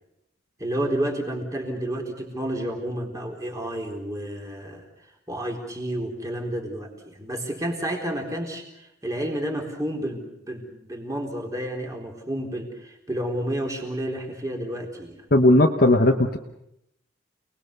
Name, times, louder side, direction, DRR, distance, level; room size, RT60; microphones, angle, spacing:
voice 1, 0.6-4.9 5.3-15.2, right 1 dB, 15° right, 1 dB, 4.0 m, -30 dB
voice 2, 15.3-16.4, left 1 dB, 50° left, 2 dB, 1.2 m, -17 dB
29.0 x 20.5 x 6.8 m, 0.82 s
head